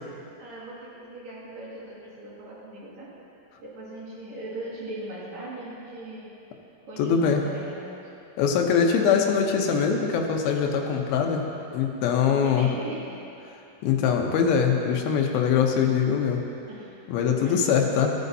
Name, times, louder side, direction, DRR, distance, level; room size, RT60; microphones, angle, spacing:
voice 1, 0.4-3.1 3.6-6.3 6.9-8.0 12.3-13.2 16.7-17.0 17.4-17.8, right 1 dB, 55° right, -8 dB, 2.9 m, -39 dB
voice 2, 7.0-7.4 8.4-12.7 13.8-16.4 17.1-18.1, left 7 dB, 85° left, 2 dB, 2.6 m, -23 dB
15.0 x 9.3 x 2.7 m, 2.8 s
omnidirectional pair, 4.3 m